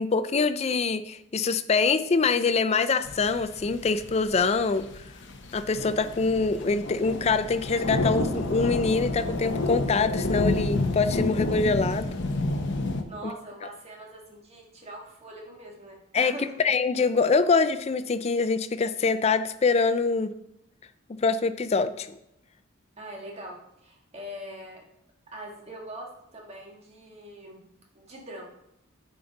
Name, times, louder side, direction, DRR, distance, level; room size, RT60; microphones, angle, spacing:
voice 1, 0.0-4.9 5.5-12.1 16.1-16.3 16.6-20.3 21.1-22.2, left 4 dB, 30° left, 12 dB, 0.4 m, -24 dB
sound 1, 3.1-13.0, left 2 dB, 55° left, 0.9 m, -29 dB
voice 2, 13.1-16.6 23.0-24.8 25.3-27.7 27.9-28.5, right 1 dB, 30° right, -1 dB, 1.6 m, -42 dB
9.6 x 5.2 x 4.0 m, 0.81 s
head